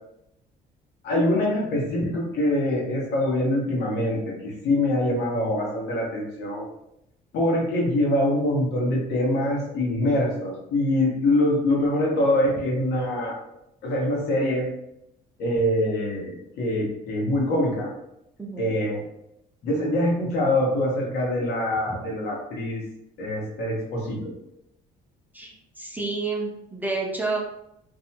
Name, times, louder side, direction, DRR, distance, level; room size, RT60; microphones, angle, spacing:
voice 1, 1.0-6.6 7.3-13.4 13.8-14.7 15.4-17.9 18.6-19.0 19.6-22.8 23.2-24.3, left 1 dB, 75° left, -3 dB, 1.0 m, -24 dB
voice 2, 18.4-18.7 21.9-22.0 25.3-25.5 25.8-27.4, right 3 dB, 10° right, -1 dB, 0.5 m, -29 dB
2.6 x 2.2 x 2.7 m, 0.81 s
cardioid pair, 110°, 17 cm